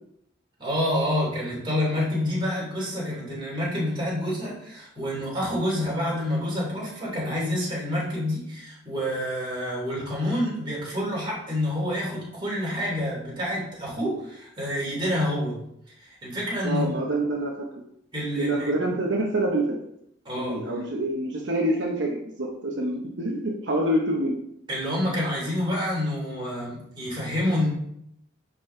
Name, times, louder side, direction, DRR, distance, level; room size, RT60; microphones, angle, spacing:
voice 1, 0.6-15.6 16.0-17.0 18.1-18.9 20.2-20.6 24.7-27.7, left 1 dB, 25° right, -5 dB, 2.9 m, -28 dB
voice 2, 16.6-17.8 18.4-19.8 20.4-24.4, right 1 dB, 75° right, -1 dB, 1.0 m, -26 dB
9.9 x 4.2 x 3.3 m, 0.75 s
head